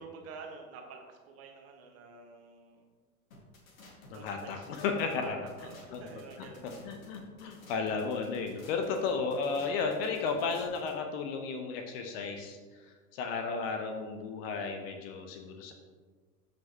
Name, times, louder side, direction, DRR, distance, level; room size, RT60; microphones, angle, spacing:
voice 1, 0.0-2.9 4.1-5.3 5.6-6.8, right 4 dB, 30° right, 2 dB, 1.5 m, -49 dB
sound 1, 3.3-10.9, left 1 dB, 60° left, 1.9 m, -54 dB
voice 2, 4.1-5.4 5.9-6.1 6.8-12.6 13.1-15.7, left 5 dB, 40° left, 4 dB, 0.9 m, -33 dB
13.0 x 5.2 x 2.9 m, 1.4 s
figure-of-eight pair, 90°, 45 cm